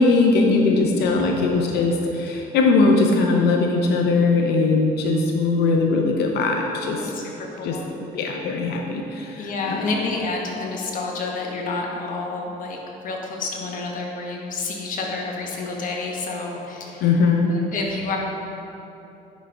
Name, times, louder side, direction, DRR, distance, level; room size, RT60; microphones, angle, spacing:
voice 1, 0.0-7.1 7.6-9.9 17.0-17.5, left 3 dB, 75° left, 2 dB, 0.7 m, -20 dB
voice 2, 1.0-1.3 7.0-7.8 9.4-12.8 13.0-17.0 17.5-18.2, left 3 dB, 55° left, -1 dB, 1.3 m, -29 dB
10.5 x 5.2 x 3.4 m, 3.0 s
cardioid pair, 110°, 17 cm